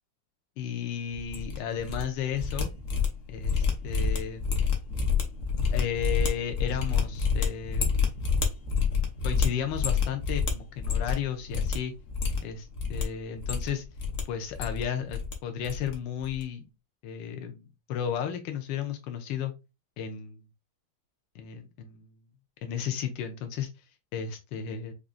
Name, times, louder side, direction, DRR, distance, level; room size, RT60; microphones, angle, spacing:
voice 1, 0.6-2.7 3.3-4.4 5.7-8.0 9.2-11.9 12.4-13.8 14.3-16.6 17.0-19.5 20.0-20.4 21.3-22.1 22.6-23.7 24.1-24.9, left 8 dB, 85° left, 6 dB, 1.3 m, -34 dB
sound 1, 1.1-2.0 2.3-11.2 11.5-11.8 12.1-13.0 13.4-14.2 14.5-15.3 15.6-16.4, left 5 dB, 55° left, 1.0 m, -28 dB
5.0 x 2.4 x 2.4 m, 0.26 s
omnidirectional pair, 2.0 m